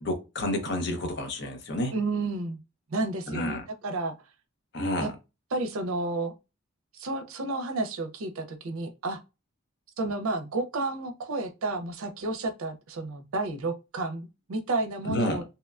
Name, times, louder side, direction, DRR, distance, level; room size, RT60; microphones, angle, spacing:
voice 1, 0.0-1.9 3.3-3.6 4.7-5.1 15.0-15.4, left 1 dB, 50° left, 0.6 m, -29 dB
voice 2, 1.9-2.6 2.9-4.1 5.0-5.1 5.5-6.3 6.9-9.2 10.0-15.4, right 2 dB, 85° right, 0.5 m, -31 dB
2.8 x 2.2 x 2.3 m
head